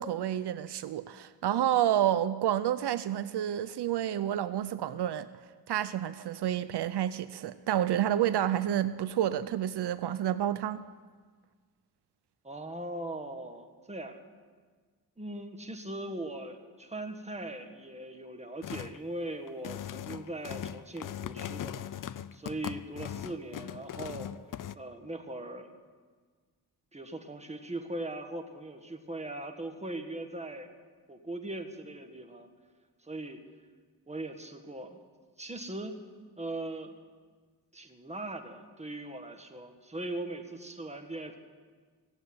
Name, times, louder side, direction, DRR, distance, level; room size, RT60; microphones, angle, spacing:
voice 1, 0.0-5.3 5.7-10.8, right 11 dB, 75° right, 14 dB, 0.6 m, -29 dB
voice 2, 12.4-14.2 15.2-21.9 22.3-24.3 24.7-25.7 26.9-30.7 31.1-32.5 33.0-33.4 34.1-35.0 35.4-36.0 36.4-37.0 37.7-41.4, right 1 dB, 15° right, 5 dB, 1.6 m, -40 dB
sound 1, 18.6-19.0 19.5-24.8, left 10 dB, 55° left, 0.5 m, -39 dB
17.0 x 7.9 x 9.5 m, 1.5 s
cardioid pair, 85°, 40 cm